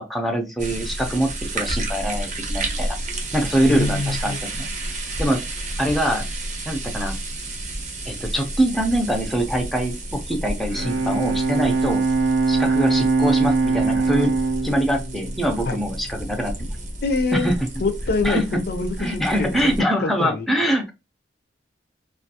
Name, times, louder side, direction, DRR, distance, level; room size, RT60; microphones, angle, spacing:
voice 1, 0.0-3.0 3.3-4.7 5.2-5.4 5.8-6.2 6.7-7.1 8.1-12.0 12.5-14.3 14.6-16.7 17.3-17.5 18.2-18.4 19.0-20.9, equal, ahead, 0.4 m, -23 dB
sound 1, 0.6-19.8, right 1 dB, 45° right, 0.6 m, -31 dB
voice 2, 3.7-4.4 15.7-15.8 17.0-17.5 17.8-19.6 20.0-20.5, left 3 dB, 60° left, 0.5 m, -25 dB
Bowed string instrument, 10.6-16.2, right 4 dB, 85° right, 0.4 m, -22 dB
2.3 x 2.3 x 2.7 m
head